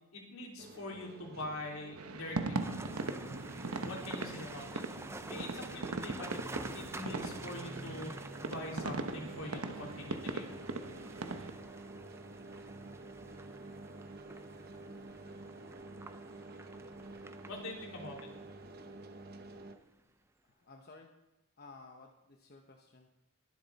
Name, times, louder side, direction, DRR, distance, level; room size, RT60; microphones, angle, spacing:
voice 1, 0.1-2.6 3.8-4.6 5.3-6.4 6.7-8.1 8.4-10.5 17.5-18.2, left 1 dB, 75° left, -1 dB, 3.5 m, -43 dB
sound 1, 0.6-19.8, right 2 dB, 45° right, 0.9 m, -50 dB
sound 2, 2.0-11.5, right 3 dB, 85° right, 1.0 m, -40 dB
sound 3, 2.6-19.7, right 2 dB, 10° right, 0.5 m, -49 dB
voice 2, 20.5-21.1 21.6-23.1, left 3 dB, 45° left, 2 dB, 1.0 m, -55 dB
22.0 x 7.5 x 4.2 m, 0.99 s
head